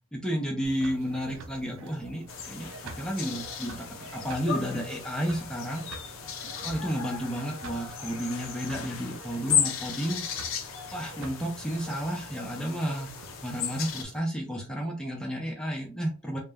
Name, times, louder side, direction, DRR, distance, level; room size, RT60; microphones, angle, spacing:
voice 1, 0.1-5.9 6.6-10.2 10.9-13.1 13.4-16.4, equal, 5° left, -1 dB, 0.4 m, -32 dB
sound 1, 0.6-14.2, right 4 dB, 80° right, 0.4 m, -47 dB
sound 2, 2.3-14.0, left 8 dB, 85° left, 0.4 m, -35 dB
2.1 x 2.0 x 3.3 m, 0.37 s
head